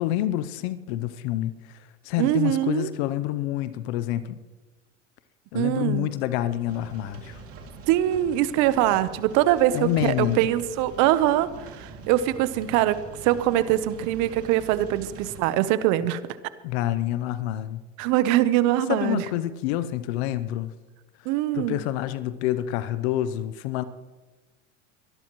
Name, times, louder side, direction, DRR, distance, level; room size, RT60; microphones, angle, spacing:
voice 1, 0.0-4.4 5.5-7.4 9.7-10.5 16.6-17.8 18.9-20.7 21.5-23.8, left 13 dB, 65° left, 14 dB, 0.8 m, -27 dB
voice 2, 2.2-2.9 5.5-6.1 7.9-13.0 13.2-16.2 18.0-19.3 21.2-21.8, right 13 dB, 55° right, 14 dB, 1.0 m, -23 dB
sound 1, 6.7-15.4, right 4 dB, 40° right, 2.6 m, -44 dB
23.0 x 12.5 x 3.1 m, 1.2 s
hypercardioid pair, 100°, 35 cm